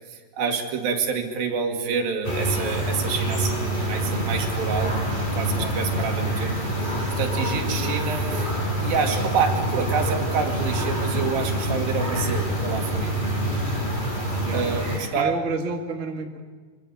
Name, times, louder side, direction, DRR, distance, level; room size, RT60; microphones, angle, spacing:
voice 1, 0.0-6.6 7.2-8.5 8.8-13.2 14.5-15.3, right 5 dB, 65° right, 3 dB, 3.8 m, -28 dB
sound 1, 2.2-15.0, right 1 dB, 10° left, 4.5 m, -26 dB
voice 2, 5.5-6.3 9.7-10.2 14.4-16.4, right 4 dB, 35° right, 3 dB, 1.1 m, -32 dB
25.0 x 24.5 x 6.9 m, 1.5 s
omnidirectional pair, 4.7 m